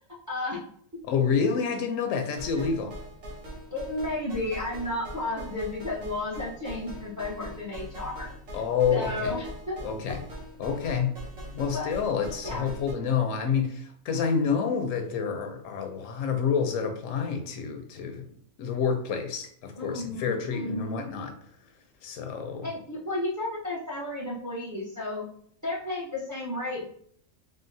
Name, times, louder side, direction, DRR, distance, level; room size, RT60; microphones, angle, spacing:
voice 1, 0.3-0.6 0.9-1.0 2.5-2.6 3.7-8.6 8.9-9.8 11.7-11.9 12.4-12.7 19.8-21.0 22.6-25.3 25.6-26.9, left 2 dB, 20° right, -4 dB, 0.5 m, -33 dB
voice 2, 1.0-2.9 8.5-9.3 9.8-10.2 10.6-11.1 11.5-18.3 18.6-21.3 22.0-22.7, left 6 dB, 80° left, 6 dB, 0.9 m, -28 dB
sound 1, 2.4-12.9, equal, 75° right, 1.3 m, -42 dB
3.7 x 2.0 x 2.6 m, 0.63 s
omnidirectional pair, 1.4 m